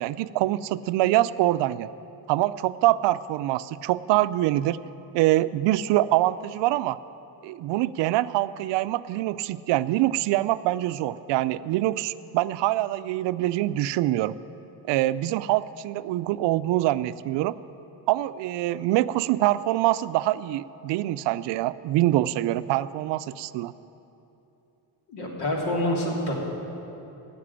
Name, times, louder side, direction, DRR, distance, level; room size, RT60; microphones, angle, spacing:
voice 1, 0.0-1.9 2.3-4.8 5.1-7.0 7.4-14.3 14.9-17.6 18.1-23.7, right 15 dB, 80° right, 15 dB, 0.5 m, -24 dB
voice 2, 25.1-26.4, left 1 dB, 65° left, -1 dB, 3.1 m, -27 dB
12.5 x 8.4 x 9.9 m, 3.0 s
cardioid pair, 130°, 42 cm